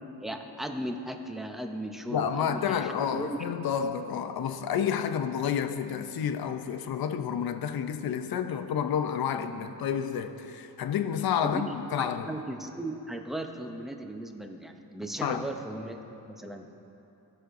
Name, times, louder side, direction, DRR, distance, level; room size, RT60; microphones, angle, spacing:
voice 1, 0.2-3.4 11.4-11.6 11.9-16.0 16.3-16.8, right 1 dB, ahead, 0.6 m, -37 dB
voice 2, 2.1-12.3 15.2-15.5, left 8 dB, 60° left, 0.6 m, -30 dB
16.0 x 6.3 x 2.6 m
cardioid pair, 85°, 41 cm